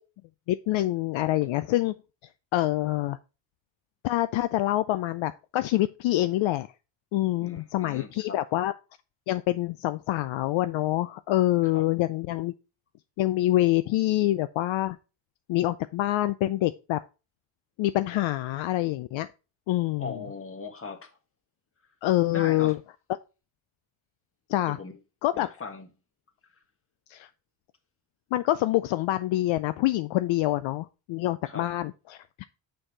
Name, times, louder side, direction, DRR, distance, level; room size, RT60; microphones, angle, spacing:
voice 1, 0.5-1.9 2.5-3.2 4.0-6.7 7.1-8.7 9.3-12.5 13.2-15.0 15.5-17.0 17.8-19.3 19.7-20.1 22.0-22.8 24.5-24.8 25.2-25.5 27.1-27.3 28.3-32.4, left 16 dB, 65° left, 0.6 m, -26 dB
voice 2, 7.4-8.4 11.7-11.8 20.0-21.1 22.3-22.7 24.6-25.0 25.3-25.9 31.4-31.7, left 4 dB, 25° left, 1.6 m, -39 dB
6.3 x 4.7 x 4.6 m
cardioid pair, 110°, 50 cm